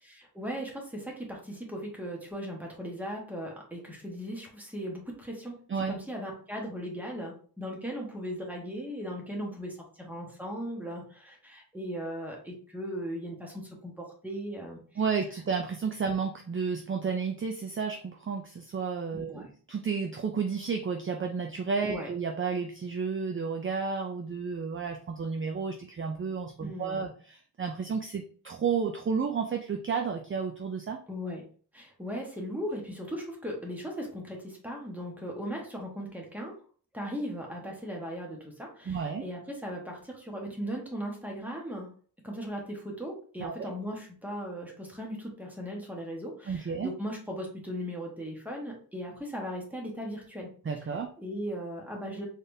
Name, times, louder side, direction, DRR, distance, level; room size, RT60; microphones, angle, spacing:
voice 1, 0.0-5.6 5.9-14.8 19.1-19.5 21.8-22.1 26.6-27.1 31.1-31.5 31.7-36.5 36.9-41.9 42.2-50.5 51.2-52.3, equal, 5° right, -1 dB, 1.2 m, -38 dB
voice 2, 15.0-31.0 38.9-39.3 43.4-43.7 46.5-46.9 50.7-51.1, right 5 dB, 35° right, 4 dB, 0.4 m, -32 dB
4.0 x 3.4 x 2.6 m, 0.44 s
wide cardioid pair, 125°, 39 cm